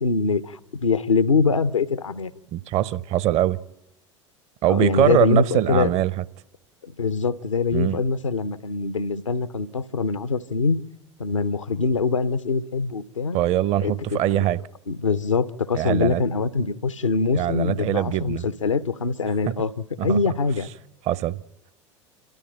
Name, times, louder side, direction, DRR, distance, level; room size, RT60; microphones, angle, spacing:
voice 1, 0.0-2.3 4.7-5.9 6.8-10.8 11.2-13.4 13.8-14.4 14.9-20.7, left 4 dB, 85° left, 0.8 m, -23 dB
voice 2, 2.5-3.6 4.6-6.2 7.7-8.0 13.3-14.6 15.7-16.2 17.3-18.4 19.5-19.6 20.0-20.2 21.1-21.4, right 13 dB, 45° right, 0.7 m, -22 dB
28.0 x 13.0 x 8.9 m
figure-of-eight pair, 80°, 16 cm